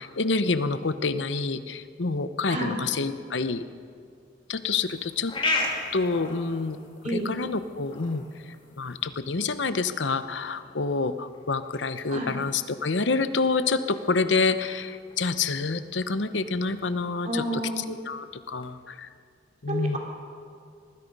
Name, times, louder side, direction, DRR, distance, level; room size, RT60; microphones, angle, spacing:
voice 1, 0.0-3.6 4.5-5.3 5.9-6.8 7.1-8.2 8.8-17.4 18.0-19.1 19.6-20.0, left 4 dB, 75° left, 11 dB, 0.9 m, -27 dB
voice 2, 2.5-2.8 7.0-7.3 12.1-12.4 17.2-17.8 19.7-20.0, right 1 dB, 40° right, 0 dB, 3.0 m, -30 dB
sound 1, 4.6-18.7, left 2 dB, 30° left, 2.5 m, -38 dB
25.0 x 20.0 x 5.4 m, 2.3 s
head